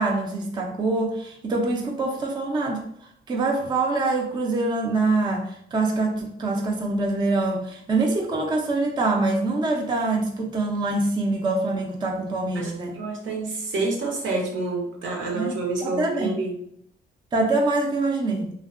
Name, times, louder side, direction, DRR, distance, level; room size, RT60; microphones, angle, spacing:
voice 1, 0.0-2.8 3.3-13.0 15.3-16.3 17.3-18.5, right 2 dB, 20° right, 1 dB, 0.4 m, -24 dB
voice 2, 12.5-16.5, right 3 dB, 75° right, -1 dB, 0.8 m, -28 dB
2.6 x 2.1 x 2.4 m, 0.70 s
cardioid pair, 90°, 20 cm